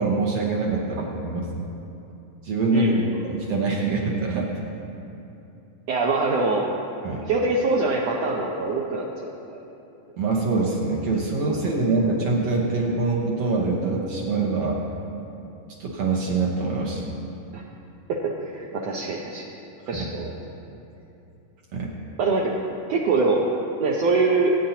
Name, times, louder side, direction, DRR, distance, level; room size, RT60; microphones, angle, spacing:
voice 1, 0.0-1.5 2.4-2.9 3.3-4.5 7.0-7.2 10.2-14.8 15.8-17.1 19.9-20.1 21.7-21.9, right 3 dB, 65° right, -2 dB, 1.7 m, -24 dB
voice 2, 2.7-3.2 5.9-6.7 7.2-9.6 11.5-11.7 17.5-17.6 18.1-19.5 19.9-20.3 22.2-22.5 22.9-23.5 23.8-24.5, right 3 dB, 80° right, -2 dB, 1.4 m, -24 dB
20.5 x 9.2 x 2.8 m, 2.8 s
omnidirectional pair, 3.9 m